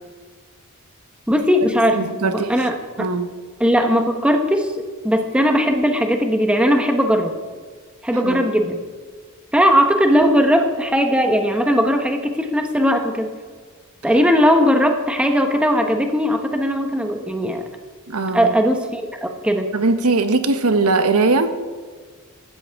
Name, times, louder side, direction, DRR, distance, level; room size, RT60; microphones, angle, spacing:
voice 1, 1.3-2.0 2.2-3.1 3.6-4.7 5.0-7.3 8.0-8.8 9.5-13.3 14.0-17.6 18.3-19.7, equal, 5° right, 4 dB, 1.1 m, -18 dB
voice 2, 2.0-2.6 3.0-3.3 8.1-8.4 18.1-18.5 19.7-21.5, right 3 dB, 90° right, 9 dB, 1.0 m, -20 dB
15.5 x 12.5 x 3.6 m, 1.5 s
head